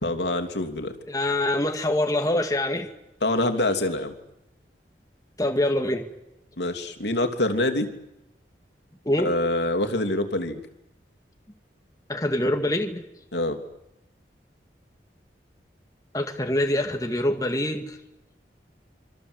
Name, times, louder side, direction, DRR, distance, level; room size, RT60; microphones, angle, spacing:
voice 1, 0.0-0.9 3.2-4.1 6.6-7.9 9.2-10.6 13.3-13.6, left 1 dB, 80° left, 3.0 m, -25 dB
voice 2, 1.1-2.9 5.4-6.1 9.1-9.3 12.1-13.0 16.1-18.0, left 1 dB, 20° left, 2.4 m, -25 dB
26.5 x 25.5 x 8.2 m
head